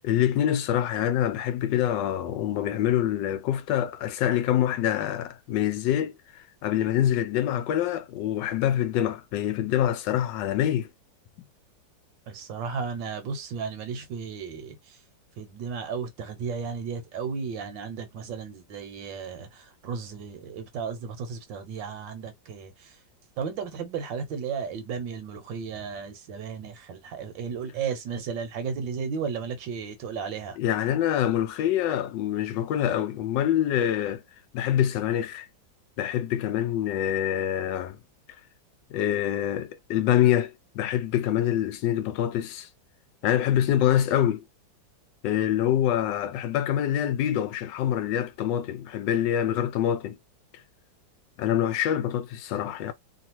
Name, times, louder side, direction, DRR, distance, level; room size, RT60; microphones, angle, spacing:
voice 1, 0.0-10.9 30.6-34.2 34.5-35.5 36.0-38.0 38.9-42.7 43.2-44.4 45.2-50.2 51.4-52.9, left 11 dB, 75° left, 1.2 m, -25 dB
voice 2, 12.3-14.8 15.4-22.7 23.4-30.6, right 6 dB, 75° right, 1.5 m, -34 dB
3.3 x 2.4 x 2.8 m
omnidirectional pair, 2.1 m